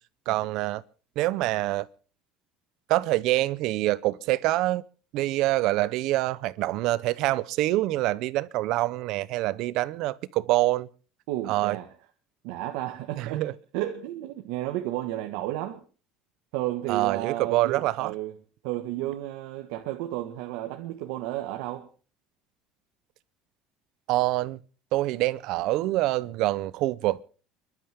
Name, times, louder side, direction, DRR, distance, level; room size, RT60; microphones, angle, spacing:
voice 1, 0.3-0.8 1.2-1.9 2.9-4.8 5.1-10.9 11.5-11.8 13.2-13.5 16.9-18.1 24.1-24.6 24.9-27.2, right 17 dB, 55° right, 0.7 m, -25 dB
voice 2, 11.3-11.9 12.4-13.4 13.7-15.8 16.5-18.4 18.6-21.9, right 14 dB, 75° right, 1.5 m, -32 dB
30.0 x 12.0 x 3.5 m
cardioid pair, 175°, 0 cm